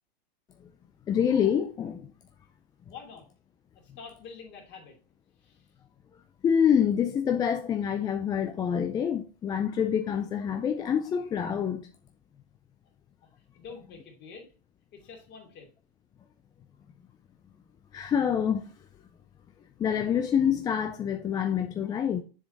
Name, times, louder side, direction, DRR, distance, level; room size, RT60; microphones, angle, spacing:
voice 1, 1.1-2.1 6.4-11.9 17.9-18.7 19.8-22.2, left 8 dB, 15° left, 0.3 m, -26 dB
voice 2, 2.9-3.2 4.0-5.0 5.4-5.6 13.5-14.5 14.9-15.7, left 5 dB, 35° left, 2.6 m, -46 dB
7.1 x 4.8 x 3.9 m
hypercardioid pair, 120°, 30 cm